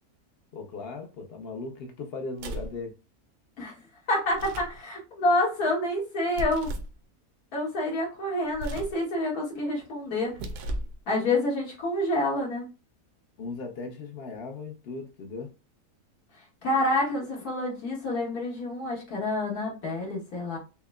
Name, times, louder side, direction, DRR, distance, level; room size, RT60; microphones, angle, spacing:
voice 1, 0.5-3.0 13.4-15.5, left 3 dB, 50° left, 0.8 m, -38 dB
sound 1, 2.3-2.8 4.3-4.8 6.3-7.0 8.5-9.0 10.3-11.0, right 1 dB, 80° right, 1.1 m, -35 dB
voice 2, 4.1-6.7 7.5-10.3 11.1-12.7 16.6-20.6, left 1 dB, 75° left, 2.1 m, -28 dB
5.5 x 2.1 x 2.2 m
omnidirectional pair, 1.6 m